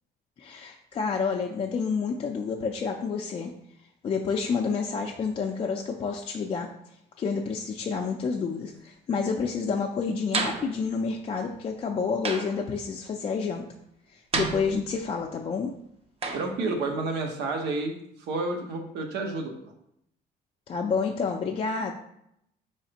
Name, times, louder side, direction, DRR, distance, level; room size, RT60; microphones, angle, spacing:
voice 1, 0.4-3.5 4.0-6.7 7.2-13.6 14.1-15.7 20.7-21.9, left 5 dB, 35° left, 1 dB, 0.4 m, -29 dB
sound 1, 10.3-10.8 12.2-12.7 14.3-15.1 16.2-16.6, right 4 dB, 35° right, 0.5 m, -31 dB
voice 2, 16.3-18.0 18.3-19.7, right 3 dB, 85° right, 3 dB, 0.8 m, -30 dB
4.1 x 3.2 x 2.8 m, 0.74 s
cardioid pair, 110°, 17 cm